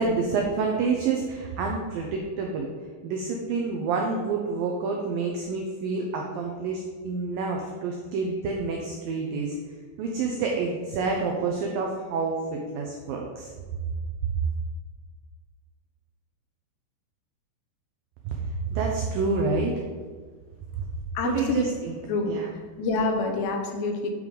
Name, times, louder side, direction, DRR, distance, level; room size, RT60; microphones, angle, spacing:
voice 1, 0.0-2.7 3.0-9.6 10.0-13.5 18.3-19.7 21.2-22.0 22.3-22.5, right 4 dB, 85° right, 1 dB, 2.0 m, -28 dB
voice 2, 21.1-21.6 22.1-24.1, left 3 dB, 80° left, 3 dB, 3.1 m, -27 dB
9.3 x 4.9 x 5.3 m, 1.5 s
omnidirectional pair, 5.1 m